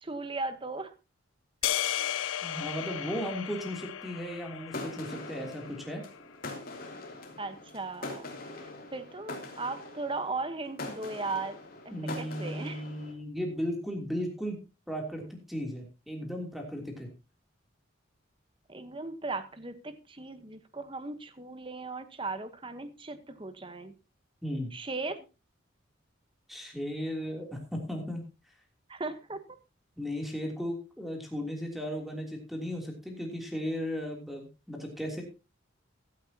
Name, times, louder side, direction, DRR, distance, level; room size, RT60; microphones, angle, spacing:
voice 1, 0.0-0.9 7.4-8.3 8.6-11.6 12.0-12.8 18.7-23.9 24.7-25.2 28.9-29.4, right 3 dB, 25° right, 10 dB, 1.2 m, -37 dB
sound 1, 1.6-6.0, left 11 dB, 80° left, 0.6 m, -35 dB
voice 2, 2.4-6.0 11.9-14.6 14.9-17.1 24.4-24.7 26.5-28.2 30.0-35.2, equal, ahead, 1 dB, 3.1 m, -36 dB
sound 2, 4.7-13.1, left 2 dB, 45° left, 3.1 m, -43 dB
16.0 x 12.0 x 2.9 m, 0.30 s
head